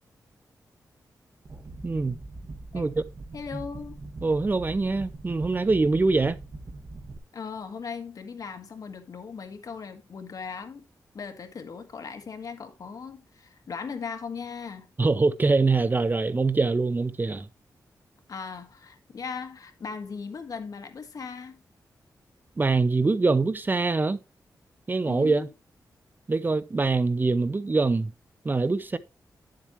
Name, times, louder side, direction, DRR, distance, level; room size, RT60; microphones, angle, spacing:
sound 1, 1.5-7.2, right 2 dB, 45° right, 1.7 m, -42 dB
voice 1, 1.8-2.2 2.7-3.0 4.2-6.4 15.0-17.5 22.6-24.2 24.9-25.5 26.3-28.1 28.4-29.0, right 3 dB, 30° right, 0.6 m, -24 dB
voice 2, 3.3-4.0 7.3-10.8 11.1-14.9 18.3-21.6 25.0-25.5, left 5 dB, 60° left, 1.6 m, -38 dB
10.5 x 7.5 x 3.0 m
wide cardioid pair, 100°, 7 cm